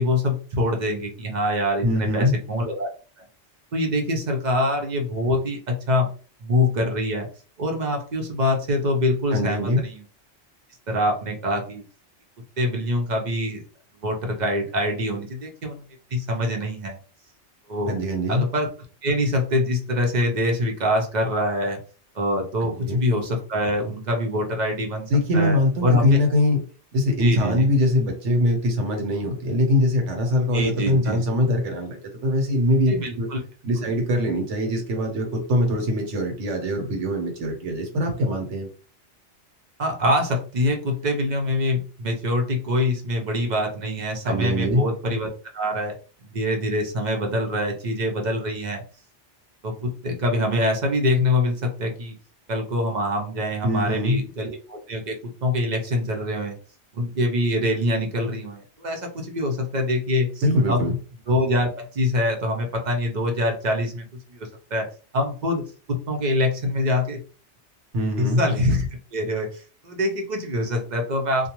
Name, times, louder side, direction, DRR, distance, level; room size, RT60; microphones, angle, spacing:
voice 1, 0.0-2.9 3.7-6.1 6.4-7.3 7.6-10.0 10.9-11.8 12.6-13.6 14.0-15.8 16.1-17.0 17.7-17.9 18.3-18.7 19.0-21.8 22.1-25.1 25.3-25.6 25.8-26.2 27.2-27.7 30.5-31.2 32.9-33.4 33.8-33.9 39.8-45.3 45.5-45.9 46.2-48.8 49.6-52.1 52.5-55.1 55.4-56.6 56.9-60.9 61.3-64.9 65.1-67.2 68.2-71.5, left 1 dB, 50° right, 2 dB, 0.6 m, -24 dB
voice 2, 1.8-2.3 9.3-9.8 17.9-18.4 22.6-23.0 25.1-26.6 26.9-33.3 33.6-38.7 44.2-44.8 53.6-54.2 60.4-60.9 67.9-68.4, left 1 dB, 85° right, 3 dB, 1.2 m, -22 dB
2.3 x 2.2 x 2.9 m, 0.37 s
omnidirectional pair, 1.2 m